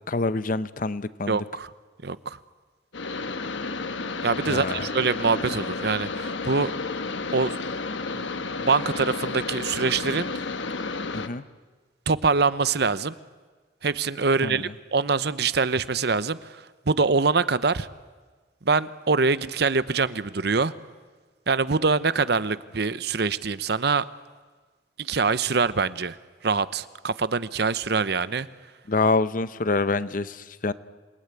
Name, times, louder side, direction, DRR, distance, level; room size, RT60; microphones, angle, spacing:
voice 1, 0.1-1.4 4.5-4.8 11.1-11.4 14.4-14.6 28.9-30.7, left 3 dB, 45° left, 15 dB, 0.8 m, -26 dB
voice 2, 1.3-1.7 2.0-2.4 4.2-6.7 7.3-7.6 8.1-8.2 8.6-10.4 12.1-13.1 13.8-17.9 18.6-20.7 21.5-24.0 25.0-26.2 26.4-28.5, right 4 dB, 60° right, 15 dB, 0.8 m, -24 dB
sound 1, 2.9-11.3, left 3 dB, 90° left, 1.3 m, -31 dB
28.0 x 19.5 x 9.8 m, 1.4 s
head